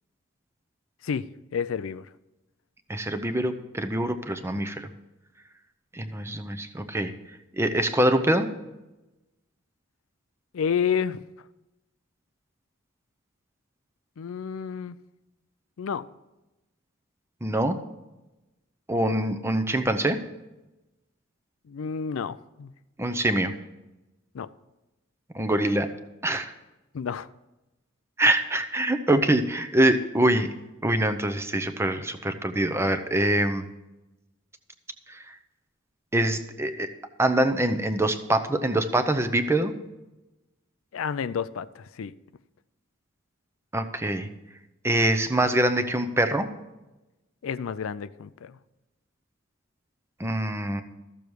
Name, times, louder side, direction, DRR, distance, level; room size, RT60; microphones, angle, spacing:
voice 1, 1.0-2.1 10.5-11.2 14.2-15.0 15.8-16.1 21.7-22.7 24.3-24.5 26.9-27.3 40.9-42.2 47.4-48.6, left 7 dB, 80° left, 0.4 m, -30 dB
voice 2, 2.9-4.9 5.9-7.1 7.5-8.5 17.4-17.8 18.9-20.2 23.0-23.5 25.3-25.9 26.2-26.5 28.2-30.5 30.8-33.6 35.1-35.4 36.1-36.9 37.2-39.7 43.7-44.3 44.8-46.5 50.2-50.8, right 1 dB, 10° right, 0.6 m, -24 dB
13.5 x 7.0 x 4.7 m
head